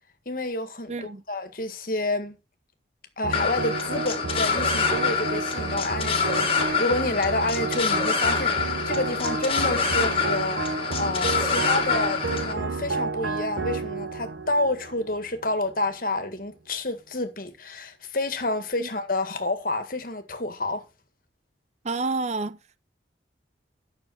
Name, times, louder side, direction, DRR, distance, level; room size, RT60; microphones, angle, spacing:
voice 1, 0.3-2.4 3.2-20.8, left 2 dB, 50° left, 1.8 m, -29 dB
voice 2, 0.9-1.2 18.8-18.9 21.8-22.6, right 3 dB, 40° right, 0.6 m, -29 dB
sound 1, 3.2-15.7, right 3 dB, 85° right, 1.0 m, -31 dB
sound 2, 3.3-12.5, left 5 dB, 30° left, 2.0 m, -26 dB
10.5 x 6.6 x 5.8 m
head